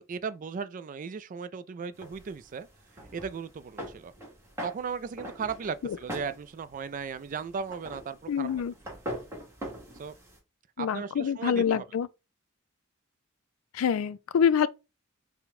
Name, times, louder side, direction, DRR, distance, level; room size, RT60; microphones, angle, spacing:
voice 1, 0.0-2.7 3.1-4.1 4.6-8.5 8.9-9.0 10.0-10.2 10.8-11.8, right 6 dB, 40° right, 0.3 m, -36 dB
sound 1, 1.9-10.4, equal, 10° right, 1.4 m, -43 dB
voice 2, 8.3-8.7 10.8-12.1 13.7-14.7, left 7 dB, 70° left, 0.3 m, -26 dB
4.3 x 2.2 x 4.1 m
head